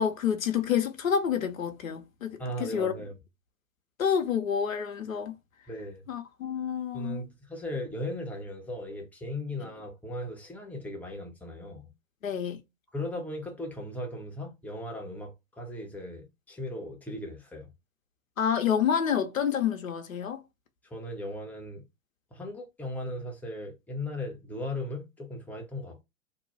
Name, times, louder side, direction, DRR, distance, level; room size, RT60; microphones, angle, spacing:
voice 1, 0.0-2.9 4.0-5.4 6.1-7.3 12.2-12.6 18.4-20.4, left 8 dB, 80° left, 0.7 m, -28 dB
voice 2, 2.4-3.2 5.7-6.1 6.9-11.9 12.9-17.7 20.8-21.9 22.3-26.0, left 1 dB, 5° left, 0.7 m, -37 dB
2.7 x 2.2 x 4.0 m
figure-of-eight pair, 95°, 40 cm